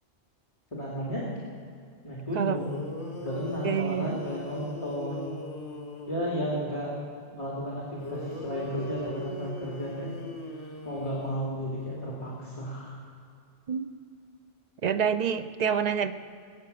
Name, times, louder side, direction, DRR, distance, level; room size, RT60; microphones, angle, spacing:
voice 1, 0.7-1.2 2.0-2.8 3.2-5.3 6.1-6.9 7.3-10.1 10.8-13.0, equal, 25° left, -5 dB, 2.7 m, -33 dB
sound 1, 2.3-2.4 2.6-6.7 8.0-12.0, left 1 dB, 65° left, 1.7 m, -40 dB
voice 2, 3.6-4.2 13.7-13.9 14.8-16.1, right 7 dB, 45° right, 10 dB, 0.7 m, -27 dB
20.5 x 9.2 x 6.8 m, 2.4 s
omnidirectional pair, 1.2 m